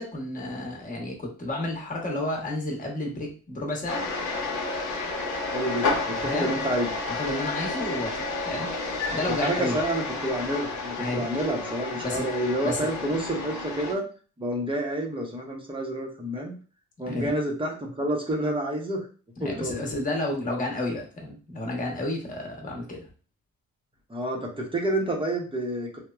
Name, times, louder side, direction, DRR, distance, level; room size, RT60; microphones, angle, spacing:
voice 1, 0.0-4.0 6.2-6.5 7.1-8.7 9.1-9.8 11.0-11.3 12.0-12.3 12.6-12.9 17.1-17.3 19.4-23.1, left 1 dB, 25° left, 0 dB, 0.9 m, -31 dB
sound 1, 3.9-13.9, left 3 dB, 70° left, 0.8 m, -31 dB
voice 2, 5.5-6.9 9.3-14.0 14.4-16.5 17.0-19.1 19.4-19.8 24.1-26.0, right 1 dB, 15° right, 0 dB, 0.7 m, -29 dB
3.0 x 2.0 x 2.3 m, 0.37 s
cardioid pair, 90°, 30 cm